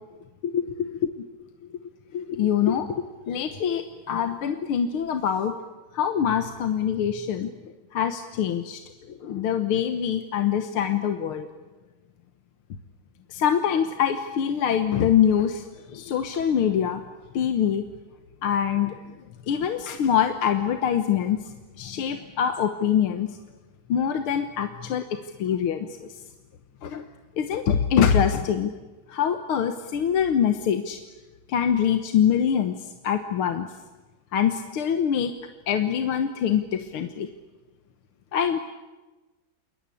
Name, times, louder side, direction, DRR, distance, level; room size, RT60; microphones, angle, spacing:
voice 1, 0.4-0.9 2.1-5.5 5.9-7.5 7.9-8.8 9.1-11.5 13.3-17.0 17.3-17.8 18.4-19.0 19.5-21.4 21.8-23.3 23.9-26.1 26.8-27.1 27.4-28.7 29.1-31.0 31.5-33.7 34.3-35.3 35.7-37.3 38.3-38.6, left 8 dB, 75° left, 7 dB, 2.0 m, -24 dB
29.5 x 21.5 x 8.5 m, 1.2 s
omnidirectional pair, 2.4 m